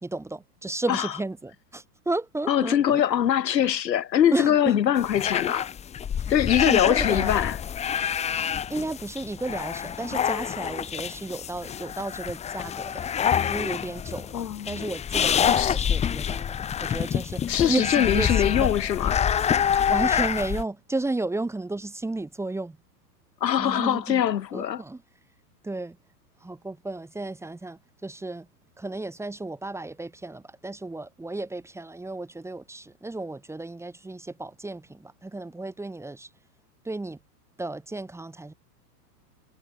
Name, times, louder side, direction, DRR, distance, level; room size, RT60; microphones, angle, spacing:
voice 1, 0.0-3.0 4.3-4.6 6.2-6.3 6.6-7.4 8.7-13.0 13.5-16.4 16.8-17.4 17.7-18.7 19.9-22.8 23.6-24.2 24.5-25.0 25.6-26.0 26.4-28.5 28.8-36.3 36.9-37.2 37.6-38.5, right 2 dB, 5° right, 3.6 m, -33 dB
voice 2, 2.5-5.7 6.3-7.6 14.3-14.8 15.5-15.8 17.5-19.2 19.7-19.9 23.4-24.8, left 10 dB, 90° left, 6.4 m, -23 dB
sound 1, 5.0-20.6, left 8 dB, 15° left, 1.0 m, -27 dB
hypercardioid pair, 140°, 49 cm